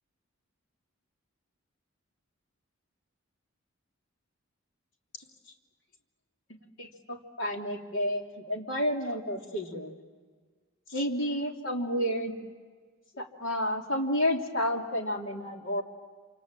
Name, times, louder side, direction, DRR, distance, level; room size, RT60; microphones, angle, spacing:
voice 1, 6.8-9.9 10.9-12.4 13.1-15.8, equal, 65° left, 2 dB, 3.1 m, -31 dB
28.0 x 26.5 x 7.6 m, 1.5 s
head